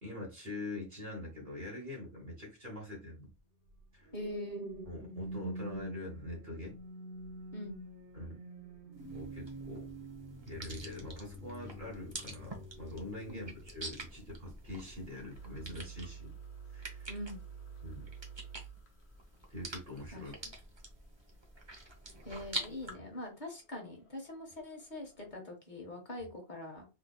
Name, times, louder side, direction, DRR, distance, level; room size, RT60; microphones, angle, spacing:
voice 1, 0.0-3.3 3.9-4.1 4.9-6.8 8.1-8.4 9.1-9.8 10.5-16.4 16.7-17.1 17.8-18.1 19.5-20.4, left 1 dB, 50° right, -2 dB, 1.4 m, -44 dB
sound 1, 3.7-14.3 14.8-15.1, right 2 dB, 80° right, 1.3 m, -47 dB
voice 2, 4.1-4.7 7.5-7.8 13.3-13.5 17.1-17.4 20.1-20.3 22.2-26.9, left 1 dB, 45° left, 2 dB, 1.2 m, -43 dB
sound 2, 9.0-22.9, right 2 dB, 30° right, 0.8 m, -47 dB
sound 3, 15.3-25.4, right 7 dB, 75° left, 1.2 m, -52 dB
3.6 x 3.3 x 2.2 m, 0.28 s
omnidirectional pair, 1.1 m